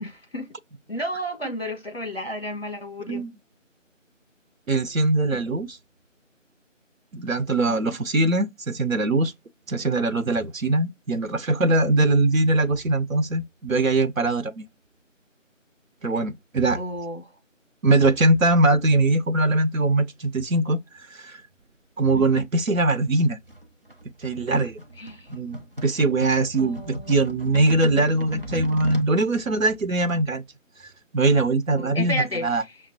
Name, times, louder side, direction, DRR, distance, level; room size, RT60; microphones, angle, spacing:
voice 1, 0.0-0.5 0.9-3.3 7.7-8.0 16.7-17.3 22.1-22.5 25.0-25.3 26.6-27.2 28.5-28.7 30.1-30.2 31.7-32.5, equal, 50° left, 1.4 m, -32 dB
voice 2, 4.7-5.8 7.1-9.3 9.7-14.6 16.0-16.8 17.8-21.4 22.0-23.4 24.2-24.8 25.3-30.4 30.8-32.6, right 2 dB, 85° right, 0.7 m, -22 dB
sound 1, 23.5-29.1, equal, 45° right, 0.7 m, -36 dB
6.0 x 2.1 x 2.8 m
figure-of-eight pair, 170°, 39 cm